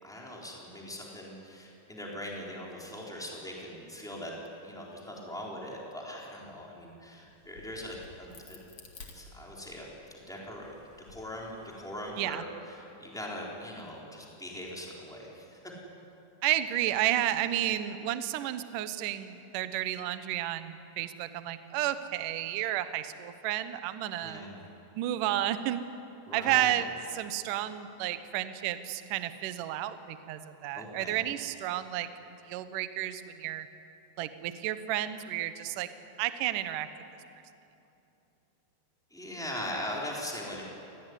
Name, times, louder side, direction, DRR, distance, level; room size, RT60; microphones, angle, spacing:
voice 1, 0.0-4.3 4.6-8.6 9.1-10.8 11.1-15.6 24.2-24.7 26.3-26.7 30.7-31.2 39.1-40.6, left 1 dB, ahead, -3 dB, 4.0 m, -41 dB
Crack, 7.3-9.9 10.5-12.1, left 4 dB, 45° left, 2.6 m, -53 dB
voice 2, 16.4-24.4 24.9-25.8 26.3-32.1 32.5-33.7 34.2-35.9 36.2-36.9, right 13 dB, 85° right, 11 dB, 1.8 m, -31 dB
27.0 x 18.0 x 9.9 m, 2.9 s
omnidirectional pair, 5.3 m